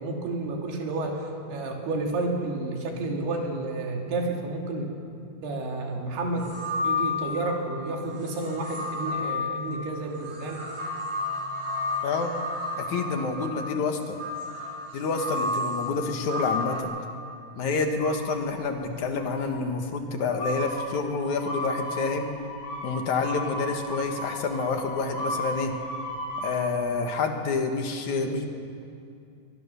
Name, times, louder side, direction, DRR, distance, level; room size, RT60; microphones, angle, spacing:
voice 1, 0.0-4.9 5.4-6.5 6.8-10.6 28.1-28.4, right 2 dB, 80° right, 1 dB, 4.6 m, -31 dB
sound 1, 6.4-7.6 8.2-16.8, left 2 dB, 30° right, 6.5 m, -31 dB
voice 2, 12.8-14.2 14.9-16.9 17.6-22.3 22.8-25.7 26.4-28.5, left 4 dB, 60° left, 5 dB, 2.4 m, -28 dB
sound 2, 18.0-18.8 19.1-19.7 20.4-26.7, left 1 dB, 85° left, 7.9 m, -35 dB
23.5 x 21.0 x 6.9 m, 2.5 s
omnidirectional pair, 4.6 m